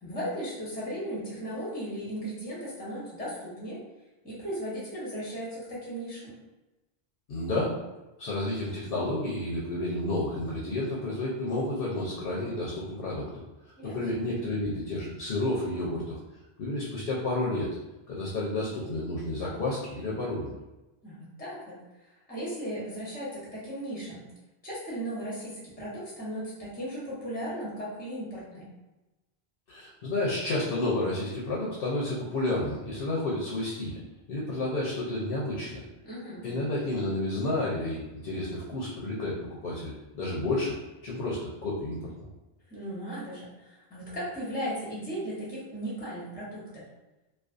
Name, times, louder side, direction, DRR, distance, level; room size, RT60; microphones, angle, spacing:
voice 1, 0.0-3.8 4.2-6.3 13.8-14.0 21.0-21.8 22.3-24.3 24.6-28.6 36.0-36.5 42.7-46.8, equal, 10° left, -7 dB, 0.7 m, -36 dB
voice 2, 7.3-7.8 8.2-13.4 13.8-16.2 16.6-17.7 18.1-20.5 29.7-34.0 34.3-35.8 36.4-40.7 41.0-42.0, left 2 dB, 65° left, -4 dB, 0.8 m, -31 dB
2.4 x 2.3 x 2.4 m, 1.0 s
omnidirectional pair, 1.1 m